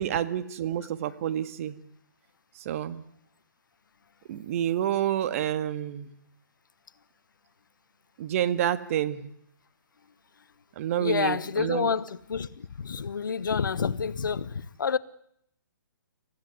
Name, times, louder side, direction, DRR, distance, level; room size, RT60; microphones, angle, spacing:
voice 1, 0.0-1.8 2.6-3.0 4.3-6.1 8.2-9.3 10.7-11.9, right 11 dB, 45° right, 1.8 m, -29 dB
voice 2, 11.0-15.0, left 6 dB, 75° left, 1.2 m, -29 dB
27.0 x 15.5 x 9.7 m
hypercardioid pair, 140°, 11 cm